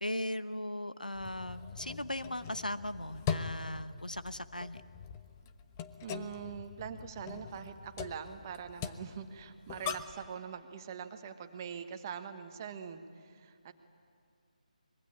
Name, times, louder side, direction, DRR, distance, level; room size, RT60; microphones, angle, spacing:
voice 1, 0.0-4.8, left 1 dB, 90° left, 13 dB, 0.9 m, -38 dB
sound 1, 1.1-10.3, left 7 dB, 20° left, 0.8 m, -42 dB
voice 2, 6.0-13.7, right 7 dB, 25° right, 7 dB, 1.4 m, -43 dB
24.5 x 22.0 x 9.8 m, 2.3 s
figure-of-eight pair, 150°, 4 cm